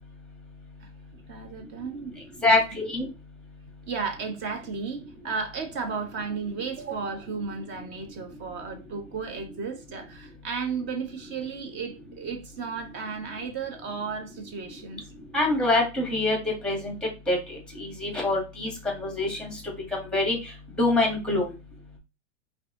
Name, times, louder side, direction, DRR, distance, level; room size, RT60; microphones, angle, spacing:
voice 1, 1.3-2.1 2.4-2.5 3.9-15.1, right 5 dB, 30° right, 1.2 m, -34 dB
voice 2, 2.4-3.1 15.3-16.4 16.6-16.9 17.3-19.6 19.9-20.4 20.8-21.5, left 2 dB, ahead, 1.8 m, -25 dB
4.6 x 2.9 x 3.8 m
hypercardioid pair, 140°, 38 cm